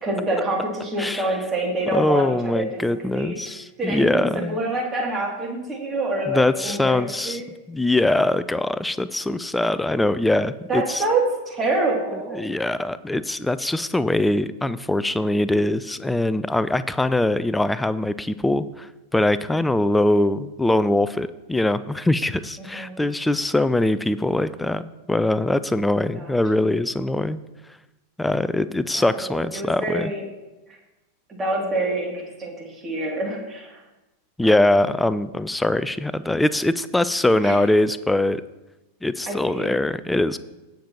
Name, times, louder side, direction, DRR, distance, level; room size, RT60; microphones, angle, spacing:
voice 1, 0.0-2.6 3.1-3.4 3.8-7.5 10.7-12.4 22.6-23.0 26.1-26.3 28.9-30.2 30.7-30.8 31.3-33.8 34.4-34.7 37.4-37.6 39.3-39.7, right 2 dB, 20° right, 0 dB, 2.4 m, -26 dB
voice 2, 1.9-4.6 6.3-7.4 7.7-11.0 12.4-27.4 28.2-30.1 34.4-38.4 39.0-40.4, left 1 dB, 5° left, 15 dB, 0.4 m, -22 dB
17.5 x 6.7 x 2.9 m, 1.1 s
figure-of-eight pair, 90°, 0 cm